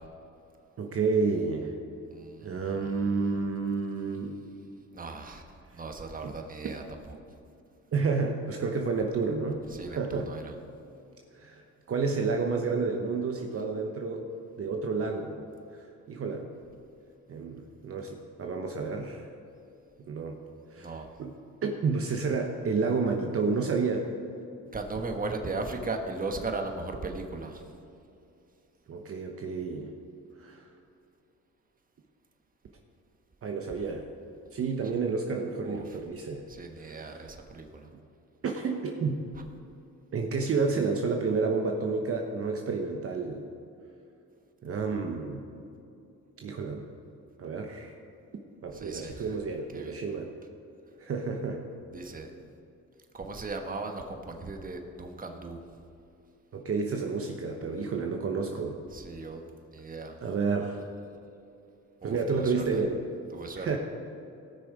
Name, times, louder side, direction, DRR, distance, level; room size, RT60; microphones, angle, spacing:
voice 1, 0.8-1.7 2.4-4.4 6.2-6.3 7.9-10.3 11.3-11.6 11.9-14.2 14.6-15.4 15.7-16.5 17.3-19.3 20.1-20.4 20.7-21.3 21.6-24.1 28.9-29.9 30.4-30.7 33.4-34.0 34.5-36.4 36.8-37.3 38.4-39.2 40.1-43.5 44.6-45.4 46.4-46.8 47.4-47.9 48.6-50.3 51.0-51.6 56.5-58.8 60.2-60.8 62.0-63.0 63.6-63.8, right 4 dB, 50° right, 2 dB, 1.1 m, -30 dB
voice 2, 2.1-2.6 4.9-5.4 5.7-6.8 9.7-10.4 20.8-21.0 24.7-27.6 35.7-35.8 36.5-37.9 48.7-49.2 49.7-50.0 51.9-52.3 53.1-55.6 58.9-59.4 59.7-60.1 62.0-62.6 63.3-63.7, right 3 dB, 30° right, 4 dB, 1.4 m, -37 dB
18.5 x 6.3 x 4.9 m, 2.6 s
cardioid pair, 90°, 30 cm